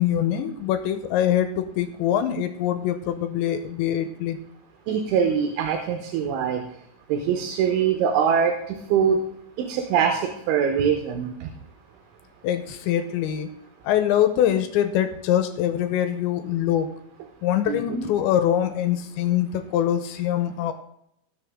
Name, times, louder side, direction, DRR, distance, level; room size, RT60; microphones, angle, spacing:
voice 1, 0.0-4.4 12.4-13.5 13.8-16.9 17.4-20.7, left 11 dB, 80° left, 9 dB, 2.9 m, -23 dB
voice 2, 4.9-6.6 7.1-9.2 9.6-11.5 17.7-18.1, right 7 dB, 80° right, 5 dB, 3.2 m, -23 dB
17.5 x 6.2 x 3.6 m, 0.75 s
omnidirectional pair, 5.6 m